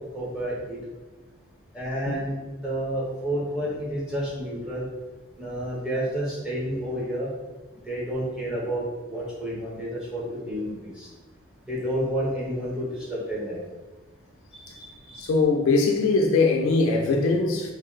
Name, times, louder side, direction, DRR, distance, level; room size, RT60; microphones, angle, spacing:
voice 1, 0.1-0.8 1.7-2.3 2.6-4.9 5.4-7.3 7.9-11.1 11.7-12.8 13.1-13.6 14.5-15.2, equal, 5° right, 0.8 m, -30 dB
voice 2, 15.2-17.7, left 3 dB, 70° left, 0.3 m, -21 dB
2.5 x 2.0 x 3.8 m
head